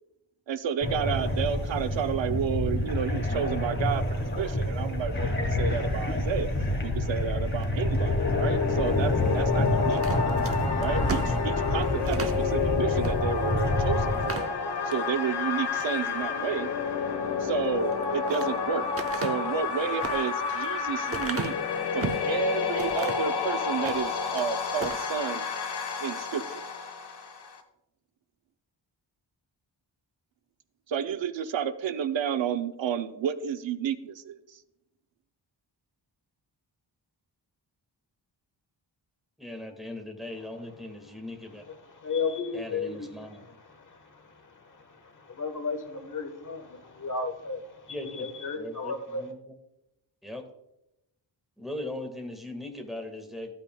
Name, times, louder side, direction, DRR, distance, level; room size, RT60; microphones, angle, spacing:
voice 1, 0.5-6.5 6.8-10.0 10.8-14.5 14.8-16.7 17.4-18.8 19.1-21.5 21.9-25.5 26.0-26.6 30.9-34.6, right 7 dB, 85° right, 0.7 m, -31 dB
sound 1, 0.8-14.3, left 1 dB, 25° left, 2.2 m, -28 dB
sound 2, 7.7-27.6, left 5 dB, 60° left, 1.2 m, -30 dB
sound 3, 9.9-12.4 13.0-13.2 13.6-13.7 14.1-15.0 15.5-16.0 17.8-18.5 19.0-22.3 22.8-23.3 23.7-24.5 24.8-25.1, right 4 dB, 30° right, 0.8 m, -36 dB
voice 2, 39.4-41.6 42.5-43.4 47.9-48.3 48.6-49.3 50.2-50.4 51.6-53.5, left 1 dB, ahead, 1.6 m, -39 dB
voice 3, 40.3-49.3, left 4 dB, 45° left, 1.3 m, -36 dB
14.5 x 8.9 x 2.3 m
wide cardioid pair, 115°, 44 cm